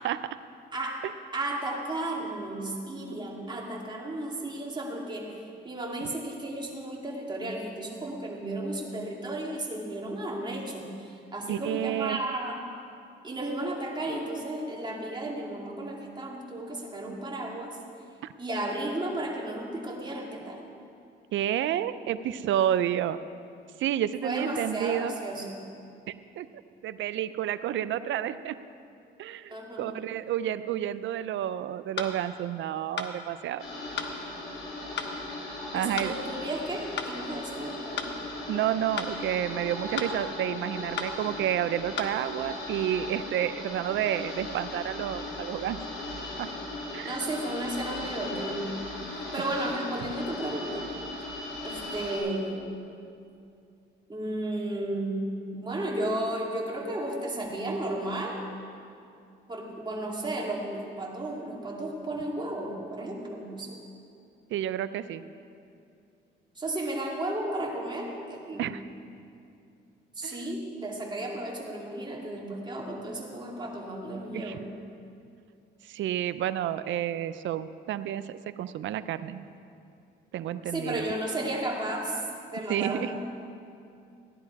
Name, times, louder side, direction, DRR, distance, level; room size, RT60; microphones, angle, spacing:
voice 1, 1.3-12.6 13.2-17.8 18.4-20.6 24.2-25.6 29.5-29.9 35.7-38.2 47.0-48.7 49.3-50.9 51.3-51.4 51.6-52.8 54.1-55.2 55.5-58.4 59.5-63.8 66.6-68.7 70.2-74.7 80.7-83.2, right 1 dB, 25° right, -2 dB, 2.5 m, -34 dB
voice 2, 11.5-12.2 18.2-18.3 21.3-23.2 23.8-25.1 26.4-26.5 26.8-28.6 29.2-33.6 35.7-36.1 38.5-45.8 46.4-46.5 46.9-47.2 64.5-65.2 68.6-68.8 70.2-70.5 74.3-74.6 75.8-79.4 80.3-81.0 82.7-83.2, right 11 dB, 70° right, 13 dB, 0.5 m, -30 dB
sound 1, 32.0-32.1 33.0-33.1 34.0-34.1 35.0-35.1 36.0-36.1 37.0-37.1 38.0-38.1 39.0-39.1 40.0-40.1 41.0-41.1 42.0-42.1, left 6 dB, 60° left, 1.1 m, -33 dB
sound 2, 33.6-52.2, left 2 dB, 85° left, 4.0 m, -38 dB
16.0 x 10.5 x 4.7 m, 2.5 s
cardioid pair, 90°, 20 cm